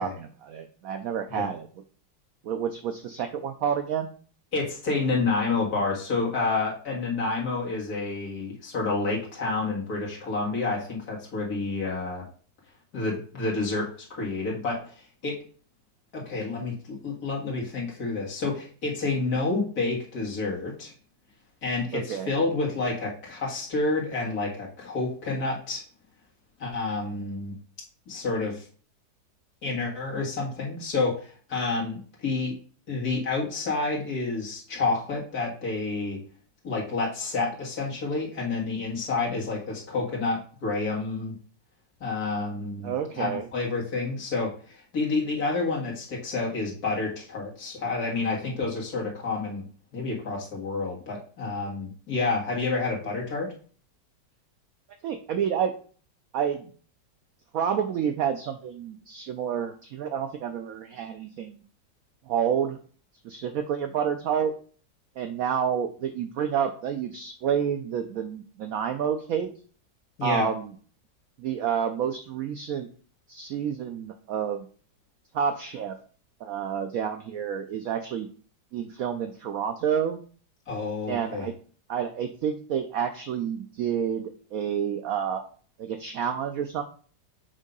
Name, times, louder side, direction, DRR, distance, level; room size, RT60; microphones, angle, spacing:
voice 1, 0.0-1.7 2.4-4.1 21.9-22.3 42.8-43.5 55.0-55.7 56.3-56.7 57.5-61.6 62.3-62.8 63.2-64.5 65.2-69.5 70.2-70.7 71.4-72.9 73.3-74.7 75.3-76.0 76.4-78.3 78.7-80.2 81.1-81.5 81.9-85.4 85.8-86.8, right 8 dB, 75° right, 7 dB, 0.8 m, -29 dB
voice 2, 4.5-12.2 12.9-15.0 15.2-15.4 16.1-20.9 21.6-25.8 26.6-27.6 28.1-28.7 29.6-32.5 32.9-36.2 36.6-41.3 42.0-49.7 49.9-53.5 70.2-70.5 80.7-81.5, left 3 dB, 55° left, -3 dB, 2.2 m, -29 dB
7.2 x 2.7 x 5.3 m, 0.43 s
omnidirectional pair, 2.0 m